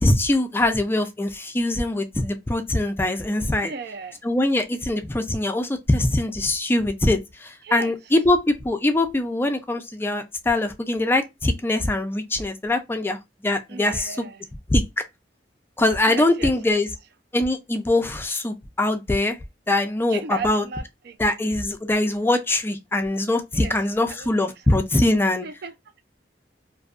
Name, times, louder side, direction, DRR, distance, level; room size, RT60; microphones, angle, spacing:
voice 1, 0.0-3.7 4.2-13.2 13.4-14.2 14.7-14.9 15.8-16.9 17.3-19.4 19.7-20.6 21.2-25.5, left 2 dB, 15° left, 0.4 m, -22 dB
voice 2, 3.6-4.2 7.6-7.9 13.7-14.4 16.1-16.8 20.1-21.2 23.5-23.7 24.1-25.0 25.4-26.0, right 4 dB, 65° right, 0.4 m, -36 dB
2.6 x 2.2 x 2.4 m
head